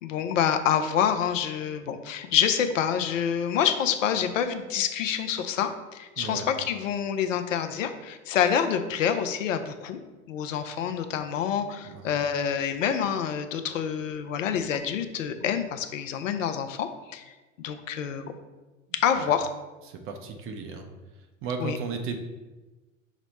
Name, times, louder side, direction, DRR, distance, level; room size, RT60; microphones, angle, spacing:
voice 1, 0.0-10.0 10.3-17.3 17.6-18.2 19.0-19.5 21.6-21.8, left 8 dB, 75° left, 8 dB, 0.5 m, -27 dB
voice 2, 6.2-6.5 11.8-12.1 19.2-19.3 19.9-20.9 21.4-22.2, right 5 dB, 35° right, 5 dB, 0.5 m, -35 dB
6.1 x 2.0 x 4.1 m, 1.2 s
hypercardioid pair, 85°, 39 cm